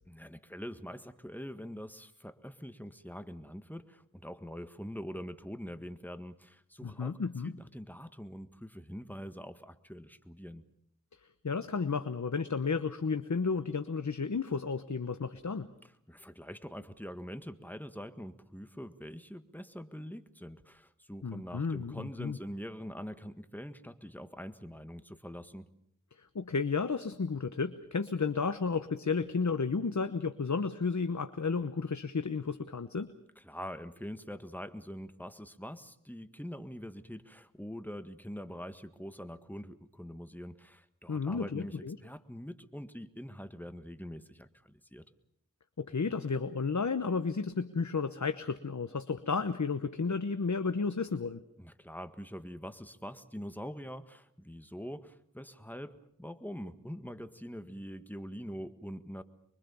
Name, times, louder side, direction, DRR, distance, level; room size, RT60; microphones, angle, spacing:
voice 1, 0.1-7.2 7.4-10.6 15.8-25.7 33.3-45.0 51.6-59.2, equal, 5° left, 10 dB, 1.7 m, -44 dB
voice 2, 6.8-7.5 11.4-15.7 21.2-22.4 26.3-33.1 41.1-42.0 45.8-51.4, left 5 dB, 65° left, 10 dB, 1.0 m, -32 dB
25.5 x 23.0 x 7.0 m, 0.70 s
wide cardioid pair, 45°, 31 cm